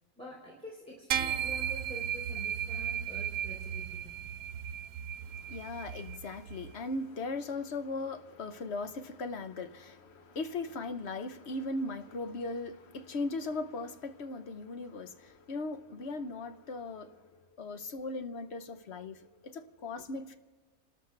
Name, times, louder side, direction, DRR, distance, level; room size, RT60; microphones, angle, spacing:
voice 1, 0.2-4.1, equal, 5° left, 3.2 m, -47 dB
sound 1, 1.1-6.7, right 9 dB, 85° right, 1.1 m, -35 dB
voice 2, 5.5-17.1 17.6-19.2 19.4-20.4, left 3 dB, 55° left, 1.0 m, -38 dB
30.0 x 13.0 x 3.3 m
omnidirectional pair, 1.5 m